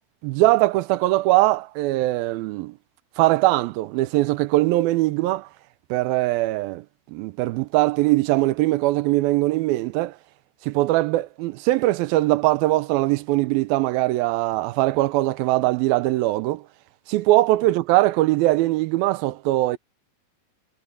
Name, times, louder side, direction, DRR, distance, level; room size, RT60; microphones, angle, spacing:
voice 1, 0.2-2.7 3.2-5.5 5.9-10.2 10.6-16.6 17.1-19.8, right 18 dB, 85° right, 2.4 m, -21 dB
omnidirectional pair, 4.2 m